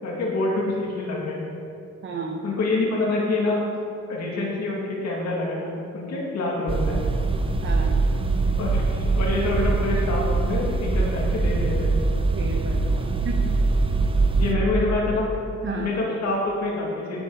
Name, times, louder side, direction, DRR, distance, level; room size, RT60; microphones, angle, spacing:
voice 1, 0.0-1.4 2.4-3.6 4.1-7.0 8.6-11.9 14.4-15.3 15.8-17.2, left 2 dB, 60° left, -3 dB, 2.3 m, -26 dB
voice 2, 2.0-2.4 7.6-7.9 12.3-13.6 15.6-15.9, right 3 dB, 40° right, 1 dB, 1.0 m, -32 dB
sound 1, 6.7-14.5, right 3 dB, 20° right, 0.8 m, -23 dB
11.0 x 7.8 x 4.0 m, 2.5 s
cardioid pair, 90°, 30 cm